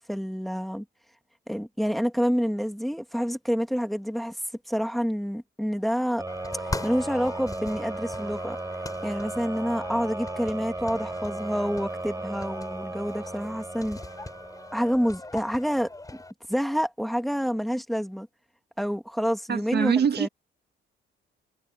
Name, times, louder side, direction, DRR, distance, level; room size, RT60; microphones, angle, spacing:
voice 1, 0.1-0.8 1.5-4.4 4.7-6.2 6.8-8.6 9.0-14.0 14.7-16.2 16.5-18.3 18.8-20.3, equal, ahead, 2.1 m, -28 dB
sound 1, 6.2-15.1, right 2 dB, 15° right, 5.0 m, -36 dB
sound 2, 6.3-16.3, left 2 dB, 15° left, 7.5 m, -40 dB
voice 2, 19.5-20.3, right 7 dB, 55° right, 1.7 m, -24 dB
cardioid pair, 90°, 20 cm